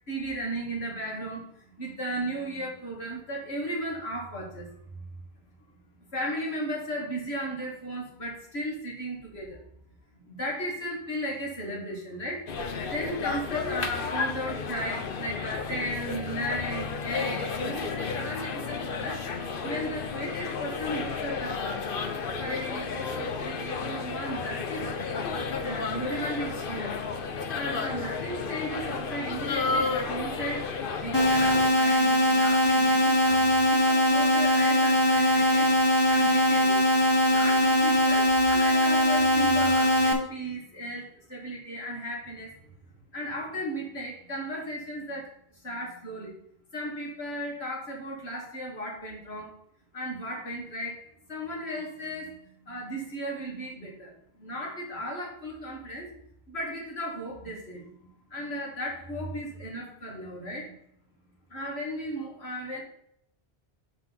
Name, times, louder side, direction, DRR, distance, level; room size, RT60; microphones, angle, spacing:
voice 1, 0.1-1.5 1.8-5.1 6.0-9.6 10.2-12.5 12.8-19.2 19.6-21.9 22.4-24.8 25.6-27.0 27.5-30.7 31.0-36.8 37.3-42.5 43.1-45.3 45.6-46.3 46.7-49.5 49.9-51.0 51.3-54.1 54.4-56.1 56.5-60.7 61.5-62.8, equal, 80° left, -2 dB, 2.4 m, -35 dB
sound 1, 12.5-31.7, left 4 dB, 60° left, 0.9 m, -32 dB
sound 2, 31.1-40.1, left 1 dB, 25° left, 1.3 m, -21 dB
6.1 x 4.1 x 6.0 m, 0.71 s
omnidirectional pair, 1.1 m